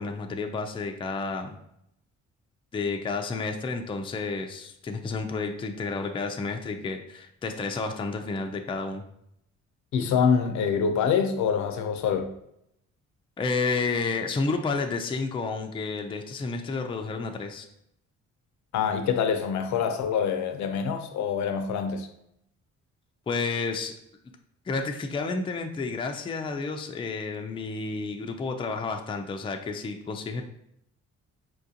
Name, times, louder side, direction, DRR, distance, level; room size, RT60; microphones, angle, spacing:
voice 1, 0.0-1.6 2.7-9.0 13.4-17.7 23.3-23.9 24.7-30.4, left 4 dB, 20° left, 0.4 m, -31 dB
voice 2, 9.9-12.3 18.7-22.1, left 6 dB, 70° left, 0.5 m, -25 dB
4.4 x 2.4 x 2.7 m
cardioid pair, 90°, 30 cm